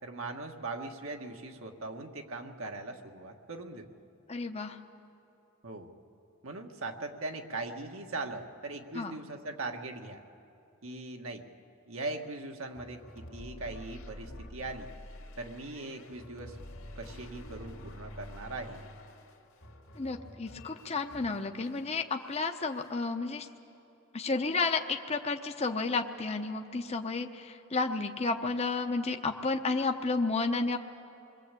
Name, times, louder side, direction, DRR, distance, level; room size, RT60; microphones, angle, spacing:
voice 1, 0.0-3.9 5.6-5.9 6.4-10.2 10.8-11.4 11.9-14.9 15.4-16.6 17.0-18.8, right 2 dB, 70° right, 3 dB, 1.7 m, -40 dB
voice 2, 4.3-4.8 8.9-9.1 20.0-23.5 24.1-30.8, left 3 dB, 30° left, 5 dB, 0.8 m, -32 dB
sound 1, 12.7-21.9 22.2-23.0, left 1 dB, 75° left, 2.3 m, -48 dB
28.0 x 22.0 x 8.3 m, 2.9 s
head